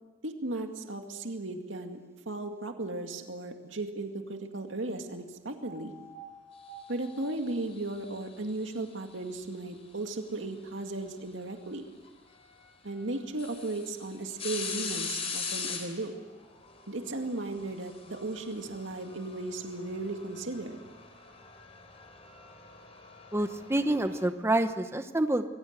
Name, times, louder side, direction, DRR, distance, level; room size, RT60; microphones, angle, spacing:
voice 1, 0.2-2.0 2.3-5.9 6.9-11.8 12.8-16.1 16.9-20.8, right 2 dB, 75° right, 4 dB, 2.2 m, -36 dB
sound 1, 5.6-7.2, right 2 dB, 85° left, 3.6 m, -49 dB
sound 2, 7.0-8.5 10.3-10.5 12.0-12.1 12.6-12.7 13.1-24.3, left 5 dB, 30° left, 3.9 m, -41 dB
voice 2, 23.3-25.5, right 1 dB, 15° right, 8 dB, 1.0 m, -27 dB
26.5 x 22.5 x 8.1 m, 1.2 s
head